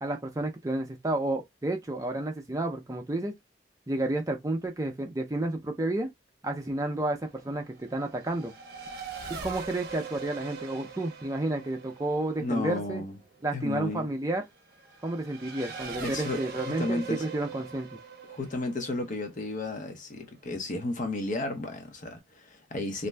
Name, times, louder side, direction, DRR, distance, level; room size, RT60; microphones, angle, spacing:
voice 1, 0.0-3.3 3.9-6.1 6.4-8.5 9.3-13.0 13.4-14.4 15.0-17.9, right 2 dB, 20° right, 0.5 m, -31 dB
Race car auto racing / Accelerating revving vroom, 6.5-20.6, right 5 dB, 55° right, 0.7 m, -43 dB
voice 2, 12.4-13.1 13.5-14.1 16.0-16.4 16.8-17.3 18.3-23.1, left 2 dB, 45° left, 0.7 m, -33 dB
2.6 x 2.1 x 3.2 m
head